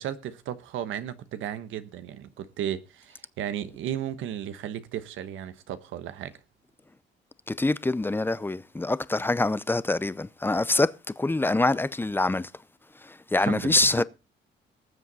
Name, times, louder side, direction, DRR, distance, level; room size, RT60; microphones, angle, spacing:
voice 1, 0.0-6.3 13.4-14.0, right 10 dB, 85° right, 1.1 m, -34 dB
voice 2, 7.5-12.5 13.0-14.0, left 2 dB, 10° left, 0.6 m, -25 dB
19.0 x 7.5 x 4.1 m
cardioid pair, 90°, 20 cm